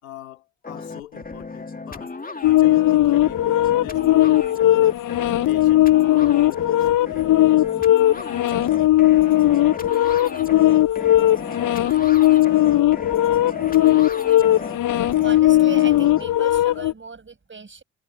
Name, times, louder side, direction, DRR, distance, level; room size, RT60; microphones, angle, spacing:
voice 1, 0.0-2.2 2.4-4.9 5.5-7.3 11.0-11.2, left 14 dB, 85° left, 3.8 m, -43 dB
sound 1, 0.6-16.2, left 3 dB, 20° left, 2.5 m, -35 dB
sound 2, 2.4-16.9, left 14 dB, 50° left, 0.8 m, -18 dB
voice 2, 15.2-17.8, right 4 dB, 30° right, 5.9 m, -37 dB
figure-of-eight pair, 40°, 40 cm